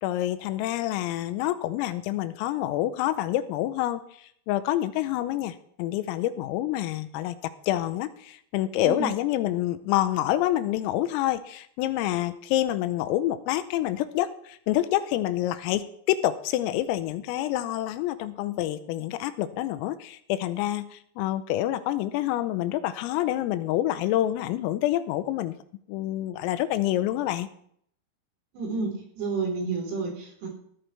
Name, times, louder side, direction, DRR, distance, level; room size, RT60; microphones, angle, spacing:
voice 1, 0.0-4.0 4.5-7.4 7.7-25.6 25.9-27.5, left 13 dB, 85° left, 12 dB, 3.4 m, -27 dB
voice 2, 28.6-30.5, right 4 dB, 90° right, -1 dB, 7.1 m, -30 dB
16.0 x 13.0 x 3.4 m, 0.66 s
omnidirectional pair, 6.0 m